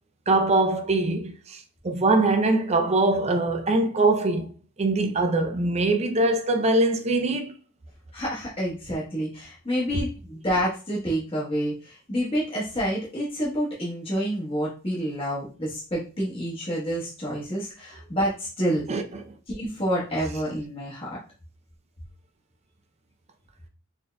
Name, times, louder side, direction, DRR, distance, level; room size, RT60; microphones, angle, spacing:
voice 1, 0.3-4.5 4.8-7.5 18.9-19.3, right 2 dB, 30° right, 0.4 m, -23 dB
voice 2, 8.1-18.8 19.5-21.2, equal, 25° left, 1.1 m, -28 dB
4.0 x 3.7 x 2.2 m
head